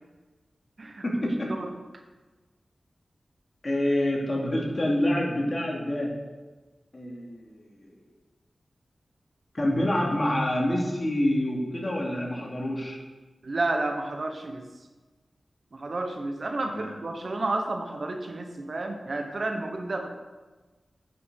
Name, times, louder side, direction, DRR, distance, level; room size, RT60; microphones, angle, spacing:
voice 1, 1.0-1.5 3.6-6.1 6.9-7.9 9.5-13.0 16.6-16.9, left 1 dB, 45° left, -2 dB, 2.8 m, -27 dB
voice 2, 13.4-14.6 15.7-20.1, right 2 dB, 65° right, 4 dB, 1.2 m, -31 dB
9.3 x 6.1 x 6.4 m, 1.3 s
cardioid pair, 40°, 0 cm